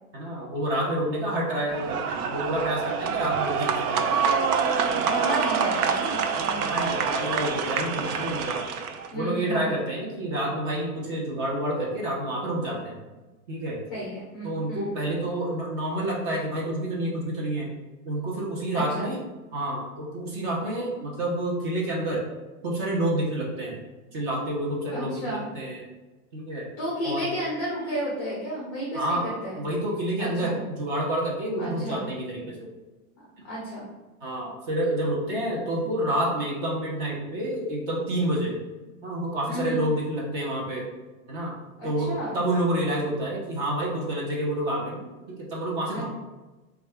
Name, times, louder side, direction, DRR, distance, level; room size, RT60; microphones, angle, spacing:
voice 1, 0.1-4.3 4.8-5.1 6.4-8.7 9.1-13.0 13.5-13.8 14.4-17.7 18.0-19.2 19.5-22.2 22.6-23.8 24.1-25.8 26.3-26.7 27.0-27.3 28.9-29.3 29.6-32.7 34.2-38.6 39.0-40.8 41.3-41.5 41.8-46.1, right 1 dB, 35° right, -3 dB, 0.8 m, -29 dB
sound 1, 1.7-9.1, right 6 dB, 75° right, 0.6 m, -26 dB
voice 2, 4.9-6.8 9.1-9.8 13.9-14.9 18.7-19.1 24.9-25.4 26.8-29.6 30.2-30.6 31.6-32.0 33.5-33.9 39.5-39.7 41.8-42.3 45.9-46.1, right 1 dB, 20° left, -5 dB, 0.5 m, -32 dB
3.8 x 2.3 x 3.5 m, 1.2 s
supercardioid pair, 165°, 45 cm